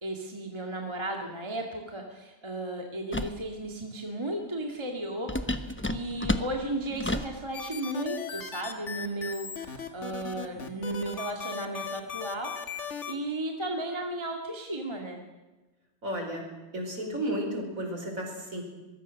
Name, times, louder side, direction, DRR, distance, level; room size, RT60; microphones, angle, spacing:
voice 1, 0.0-15.2, right 1 dB, 15° right, 1 dB, 2.1 m, -35 dB
sound 1, 3.1-3.4 5.3-7.4, left 1 dB, 20° left, 0.3 m, -31 dB
sound 2, 7.5-13.1, left 7 dB, 40° left, 1.8 m, -38 dB
voice 2, 16.0-16.4 16.7-18.6, equal, 40° right, 2 dB, 5.2 m, -33 dB
24.0 x 21.5 x 6.5 m, 1.1 s
omnidirectional pair, 2.2 m